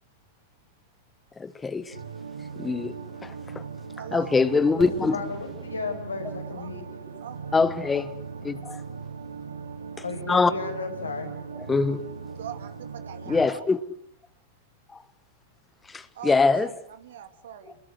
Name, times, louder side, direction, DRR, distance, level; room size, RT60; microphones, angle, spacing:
sound 1, 1.9-13.5, right 5 dB, 90° right, 2.3 m, -39 dB
voice 1, 2.6-2.9 4.1-5.2 7.5-8.1 8.4-8.8 10.3-10.5 11.7-12.0 13.3-13.8 16.2-16.7, left 4 dB, 15° left, 1.4 m, -22 dB
voice 2, 4.0-4.4 6.5-6.7 7.2-7.4 12.4-13.6 16.1-17.8, right 9 dB, 70° right, 2.8 m, -42 dB
voice 3, 4.7-6.8 10.0-11.3, left 3 dB, 90° left, 6.4 m, -34 dB
Fireworks, 4.8-8.7, right 6 dB, 25° right, 4.9 m, -46 dB
29.0 x 21.5 x 8.0 m
hypercardioid pair, 100°, 0 cm